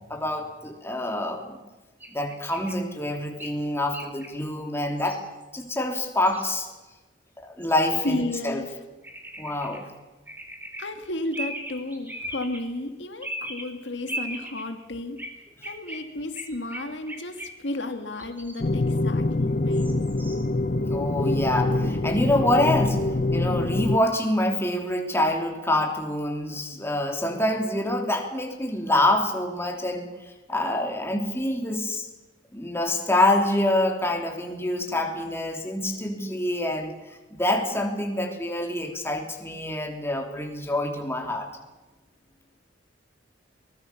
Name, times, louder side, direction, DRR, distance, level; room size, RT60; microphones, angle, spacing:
voice 1, 0.1-1.6 2.1-5.2 5.5-6.7 7.4-8.6 9.4-9.8 20.9-23.0 23.3-30.1 30.5-32.0 32.5-36.9 37.3-41.5, left 1 dB, 15° left, 3 dB, 3.2 m, -26 dB
sound 1, 2.0-2.7 3.4-3.5 3.9-4.3 5.0-5.2 5.4-5.7 6.3-6.7 7.6-7.8 9.0-9.8 10.3-10.8 11.3-12.6 13.2-13.6 14.1-14.6 15.2-15.3 15.6-17.7 18.2-18.6 19.7-20.4, right 1 dB, 10° right, 4.0 m, -37 dB
voice 2, 8.0-8.8 10.8-15.2 15.6-20.0, left 2 dB, 70° left, 7 dB, 1.9 m, -33 dB
sound 2, 18.6-24.0, left 2 dB, 45° left, 0.7 m, -25 dB
23.5 x 20.5 x 7.0 m, 1.1 s
head